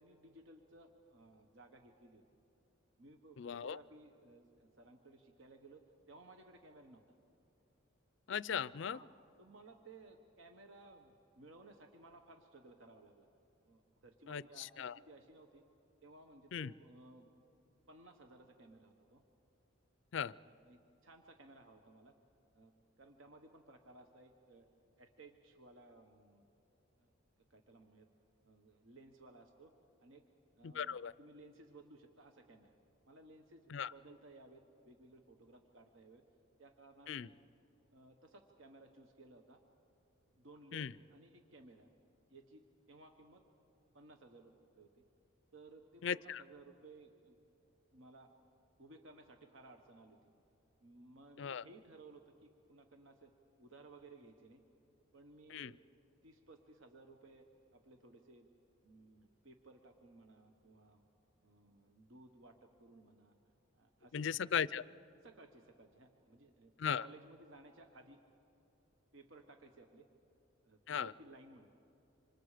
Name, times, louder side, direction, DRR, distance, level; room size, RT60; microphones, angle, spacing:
voice 1, 0.0-2.2 3.0-7.2 8.8-13.3 13.7-15.6 16.0-17.3 17.9-19.2 20.4-22.2 22.5-22.7 23.0-24.7 25.0-26.5 27.0-27.1 27.5-28.1 28.4-29.7 30.0-30.2 30.6-32.7 33.1-36.2 36.6-37.4 37.9-39.6 40.3-41.9 42.3-43.4 43.9-45.0 45.5-47.3 47.9-48.3 48.8-50.2 50.8-53.3 53.6-54.6 55.1-55.8 56.2-57.5 57.7-58.5 58.8-61.0 61.4-63.3 63.7-64.3 65.2-66.7 67.0-68.2 69.1-70.1 70.6-71.7, right 2 dB, 70° right, 5 dB, 1.3 m, -59 dB
voice 2, 3.4-3.8 8.3-9.0 14.3-14.9 16.5-16.7 20.1-20.3 30.6-31.1 33.7-33.9 37.1-37.3 40.7-40.9 46.0-46.4 51.4-51.6 55.5-55.7 64.1-64.8 66.8-67.1 70.9-71.1, left 7 dB, 60° left, 19 dB, 0.4 m, -37 dB
28.0 x 26.0 x 5.0 m, 3.0 s
head